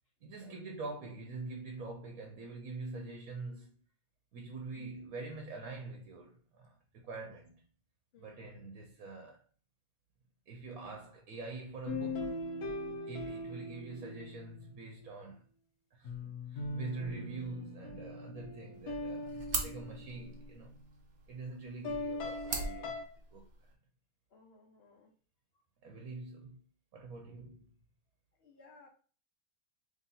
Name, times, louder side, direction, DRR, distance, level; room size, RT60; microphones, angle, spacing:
voice 1, 0.2-3.8 4.3-7.5 8.2-9.4 10.5-12.3 12.9-15.5 15.9-20.8 21.3-23.0 23.3-23.5 25.8-26.6 26.9-27.7, right 3 dB, 75° right, 1.1 m, -45 dB
voice 2, 8.1-8.6 24.3-25.1 28.4-28.9, left 3 dB, 50° left, 1.1 m, -59 dB
sound 1, 11.9-14.7 16.0-20.6 21.8-23.0, left 2 dB, 90° left, 1.3 m, -40 dB
sound 2, 18.7-23.7, right 3 dB, 50° right, 0.9 m, -42 dB
3.3 x 2.8 x 3.8 m
omnidirectional pair, 1.5 m